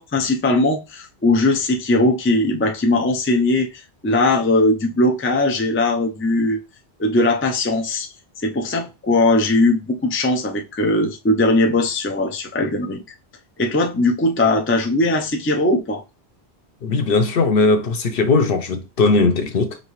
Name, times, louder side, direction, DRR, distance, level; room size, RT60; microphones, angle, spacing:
voice 1, 0.0-3.7 4.0-6.6 7.0-8.1 8.4-13.0 13.6-16.0, left 2 dB, 20° left, 0.4 m, -19 dB
voice 2, 16.8-19.8, left 3 dB, 60° left, 0.8 m, -18 dB
5.2 x 2.7 x 3.1 m
omnidirectional pair, 1.1 m